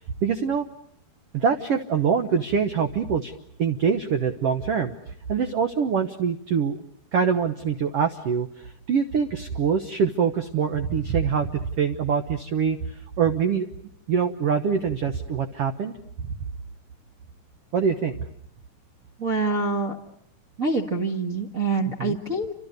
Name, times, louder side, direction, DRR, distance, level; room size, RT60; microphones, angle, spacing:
voice 1, 0.2-0.7 1.3-3.3 3.6-4.9 5.3-6.8 7.1-12.8 13.2-13.7 14.1-15.9 17.7-18.3 22.0-22.2, right 6 dB, 65° right, 7 dB, 1.5 m, -24 dB
voice 2, 19.2-20.0 20.6-22.5, right 3 dB, 40° right, -1 dB, 1.2 m, -25 dB
30.0 x 26.5 x 6.7 m, 0.71 s
omnidirectional pair, 4.2 m